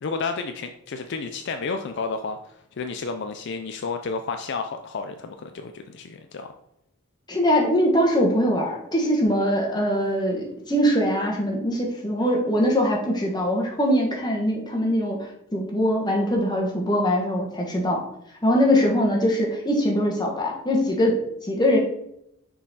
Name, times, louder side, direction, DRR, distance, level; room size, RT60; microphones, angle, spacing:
voice 1, 0.0-6.5, left 4 dB, 55° left, 6 dB, 0.4 m, -31 dB
voice 2, 7.3-15.2 15.5-18.0 18.4-21.2 21.5-21.8, equal, 20° left, -1 dB, 1.2 m, -22 dB
6.2 x 3.9 x 4.1 m, 0.77 s
head